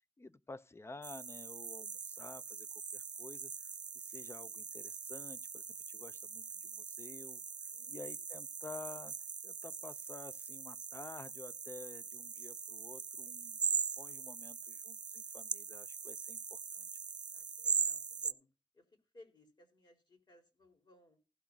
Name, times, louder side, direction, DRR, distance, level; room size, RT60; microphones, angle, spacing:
voice 1, 0.2-3.5 3.9-7.4 7.9-9.1 9.4-13.6 14.0-16.9, left 3 dB, 30° left, 0.7 m, -51 dB
sound 1, 1.0-18.3, right 6 dB, 55° right, 0.5 m, -41 dB
voice 2, 7.7-8.0 17.3-18.5 18.7-18.9 19.1-21.2, left 1 dB, 55° left, 3.9 m, -63 dB
16.0 x 6.0 x 3.9 m
wide cardioid pair, 90°, 9 cm